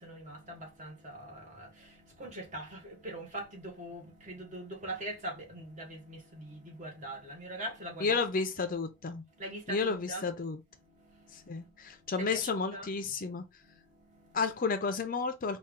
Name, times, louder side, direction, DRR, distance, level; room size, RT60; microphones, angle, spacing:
voice 1, 0.0-8.7 9.3-10.4 10.7-14.5, right 1 dB, 35° right, 1.2 m, -43 dB
voice 2, 8.0-9.2 9.7-10.6 11.3-13.4 14.3-15.6, left 4 dB, 40° left, 0.5 m, -32 dB
4.3 x 2.3 x 3.6 m
head